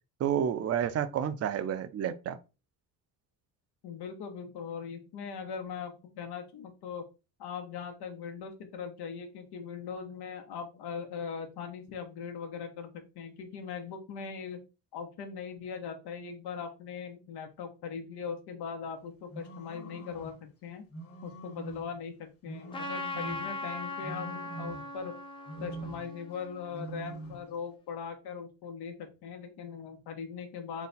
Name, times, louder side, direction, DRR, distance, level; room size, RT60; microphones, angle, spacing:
voice 1, 0.2-2.4, right 9 dB, 40° right, 0.5 m, -30 dB
voice 2, 3.8-7.0 7.4-14.6 14.9-20.3 20.6-20.8 21.2-25.1 25.6-30.9, left 6 dB, 85° left, 1.0 m, -40 dB
sound 1, 19.3-20.4 20.9-22.0 22.4-23.6 24.0-25.1 25.5-26.2 26.7-27.5, right 3 dB, 35° left, 1.2 m, -44 dB
Trumpet, 22.7-27.4, left 2 dB, 15° left, 0.6 m, -40 dB
4.0 x 2.2 x 4.0 m
cardioid pair, 120°, 38 cm